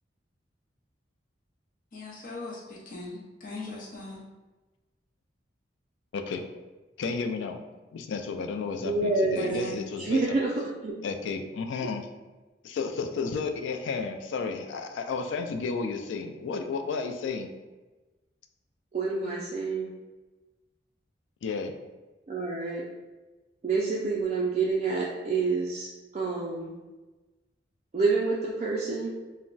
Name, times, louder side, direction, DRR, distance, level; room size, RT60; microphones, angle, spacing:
voice 1, 1.9-4.2 9.1-9.7, left 2 dB, 50° left, -5 dB, 0.7 m, -40 dB
voice 2, 6.1-6.4 7.0-7.6 7.9-10.4 11.0-12.1 12.6-17.5 21.4-21.7, left 4 dB, 85° left, 6 dB, 0.3 m, -32 dB
voice 3, 8.8-10.5 10.8-10.9 18.9-19.9 22.3-22.8 23.6-25.9 26.1-26.7 27.9-29.1, right 3 dB, 35° right, -5 dB, 0.3 m, -28 dB
2.2 x 2.1 x 3.8 m, 1.2 s
head